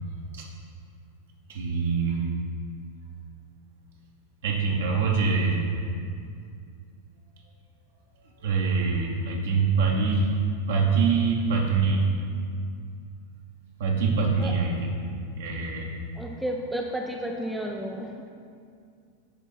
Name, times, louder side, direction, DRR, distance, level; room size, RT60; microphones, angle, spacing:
voice 1, 1.5-2.3 4.4-5.7 8.4-10.3 10.7-12.1 13.8-15.0 15.3-15.9, right 4 dB, 60° right, -1 dB, 1.1 m, -24 dB
voice 2, 16.2-18.3, equal, 5° right, 1 dB, 0.5 m, -32 dB
10.0 x 3.6 x 5.5 m, 2.3 s
figure-of-eight pair, 90°, 0 cm